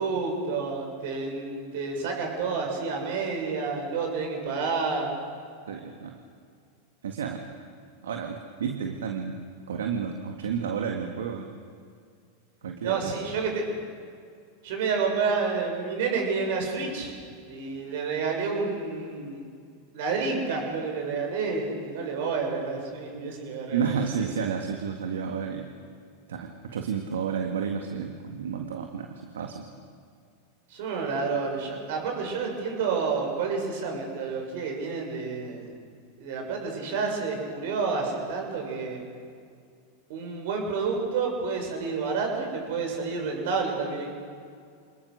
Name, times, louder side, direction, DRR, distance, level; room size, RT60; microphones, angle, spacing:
voice 1, 0.0-5.1 12.8-13.8 14.6-19.5 19.9-24.3 30.7-35.7 36.2-39.0 40.1-44.1, right 4 dB, 65° right, 2 dB, 6.7 m, -29 dB
voice 2, 5.7-6.2 7.0-7.4 8.0-9.4 9.7-11.5 12.6-13.2 23.7-25.7 26.3-29.6, right 6 dB, 80° right, 4 dB, 1.8 m, -31 dB
27.0 x 20.5 x 6.5 m, 2.2 s
hypercardioid pair, 100°, 0 cm